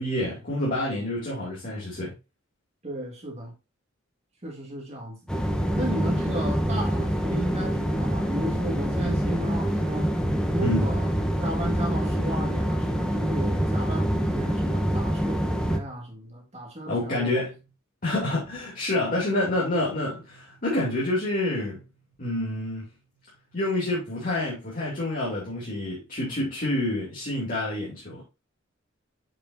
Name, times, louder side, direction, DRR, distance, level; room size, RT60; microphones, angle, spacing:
voice 1, 0.0-2.1 10.6-10.8 16.9-17.6 18.0-21.8 22.2-22.9 23.5-28.2, left 1 dB, 45° left, 2.5 m, -28 dB
voice 2, 2.8-3.5 4.4-5.2 5.7-10.1 10.5-11.1 11.4-17.4, right 1 dB, 35° right, 1.9 m, -34 dB
sound 1, 5.3-15.8, equal, 5° left, 0.9 m, -26 dB
7.4 x 5.9 x 2.6 m
head